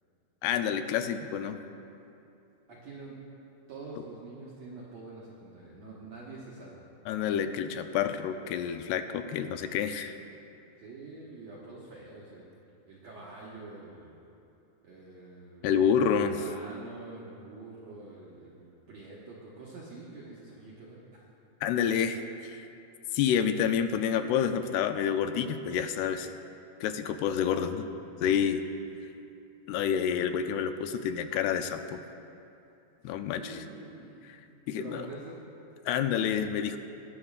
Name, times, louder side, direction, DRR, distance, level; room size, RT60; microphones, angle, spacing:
voice 1, 0.4-1.6 7.1-10.2 15.6-16.4 21.6-22.7 23.1-26.3 26.8-27.9 28.2-28.6 29.7-32.0 33.0-33.6 34.2-34.4 34.7-35.1 35.9-36.8, left 8 dB, 85° left, 8 dB, 2.5 m, -28 dB
voice 2, 2.7-3.1 3.7-6.9 10.8-12.5 12.9-14.2 14.8-21.2 27.2-27.8 33.3-35.4, right 3 dB, 70° right, -6 dB, 1.6 m, -46 dB
20.0 x 9.8 x 2.4 m, 2.7 s
omnidirectional pair, 4.6 m